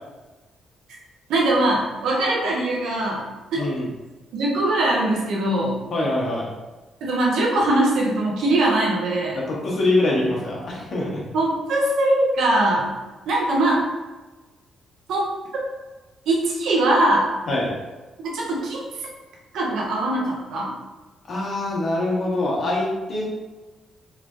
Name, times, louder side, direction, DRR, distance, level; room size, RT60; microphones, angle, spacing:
voice 1, 1.3-3.3 3.5-3.7 4.3-5.8 7.0-9.4 11.3-12.9 13.3-13.9 15.1-15.3 16.3-17.3 18.3-18.8 19.5-20.7, right 1 dB, 80° right, -3 dB, 0.7 m, -21 dB
voice 2, 3.5-3.9 5.9-6.5 9.3-11.2 17.5-17.7 21.3-23.3, left 2 dB, 55° left, -4 dB, 1.1 m, -24 dB
3.4 x 3.2 x 2.5 m, 1.2 s
cardioid pair, 85°, 0 cm